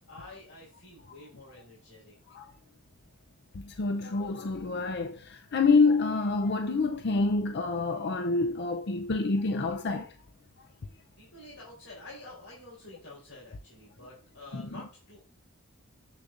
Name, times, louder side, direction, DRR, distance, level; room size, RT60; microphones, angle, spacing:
voice 1, 0.1-2.1 11.2-15.2, left 2 dB, 75° left, 3.7 m, -49 dB
voice 2, 3.6-10.1 14.5-14.7, left 3 dB, 50° left, 0.5 m, -27 dB
7.5 x 6.6 x 2.5 m
head